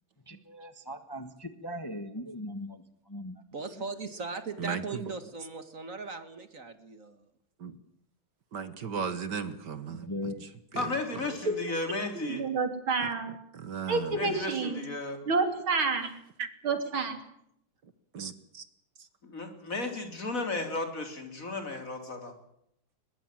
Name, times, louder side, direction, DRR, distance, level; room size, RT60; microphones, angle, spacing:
voice 1, 0.5-2.8 3.1-3.4 9.9-10.5, left 1 dB, 15° left, 10 dB, 1.1 m, -39 dB
voice 2, 3.5-7.3, right 4 dB, 40° right, 11 dB, 1.9 m, -39 dB
voice 3, 4.6-5.1 7.6-7.8 8.5-11.3 13.0-14.4 15.9-16.5 17.8-18.7 19.0-19.1, right 6 dB, 60° right, 13 dB, 1.9 m, -38 dB
voice 4, 10.8-12.4 14.2-15.2 19.2-22.3, left 2 dB, 40° left, 6 dB, 3.8 m, -34 dB
voice 5, 12.1-13.4 13.9-14.8 15.3-16.1 16.7-17.2, right 4 dB, 85° right, 7 dB, 3.9 m, -29 dB
22.0 x 21.0 x 7.6 m, 0.74 s
omnidirectional pair, 2.2 m